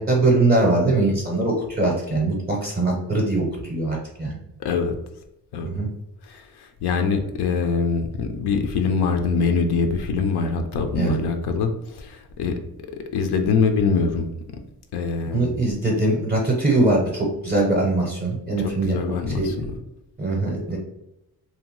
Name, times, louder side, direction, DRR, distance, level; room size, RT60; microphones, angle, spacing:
voice 1, 0.0-4.4 5.6-5.9 11.0-11.2 15.3-19.5 20.2-20.8, right 2 dB, 25° right, -2 dB, 0.6 m, -22 dB
voice 2, 4.6-4.9 5.5-5.7 6.2-12.5 13.1-14.3 14.9-15.5 18.8-19.7, left 5 dB, 90° left, 6 dB, 0.5 m, -23 dB
2.7 x 2.2 x 3.0 m, 0.86 s
wide cardioid pair, 125°, 38 cm